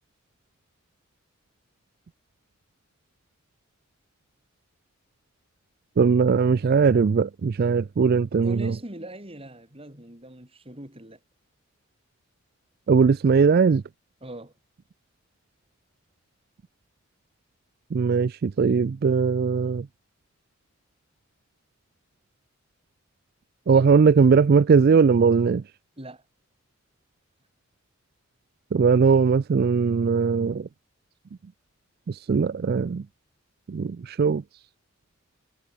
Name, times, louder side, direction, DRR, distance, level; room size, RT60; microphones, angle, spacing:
voice 1, 6.0-8.7 12.9-13.8 17.9-19.9 23.7-25.6 28.7-30.7 32.1-33.0 33.7-34.4, right 5 dB, 50° right, 0.4 m, -20 dB
voice 2, 8.3-11.2 14.2-14.5 26.0-26.2, right 1 dB, 30° right, 6.3 m, -41 dB
head